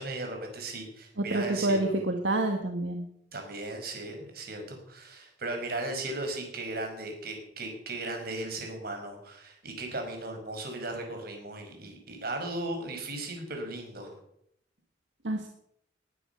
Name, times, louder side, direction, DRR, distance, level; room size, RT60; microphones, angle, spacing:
voice 1, 0.0-1.9 3.3-14.1, right 2 dB, 55° right, 4 dB, 5.4 m, -37 dB
voice 2, 1.3-3.1 15.2-15.5, right 2 dB, 75° right, 4 dB, 1.7 m, -28 dB
20.5 x 10.0 x 6.9 m, 0.76 s
head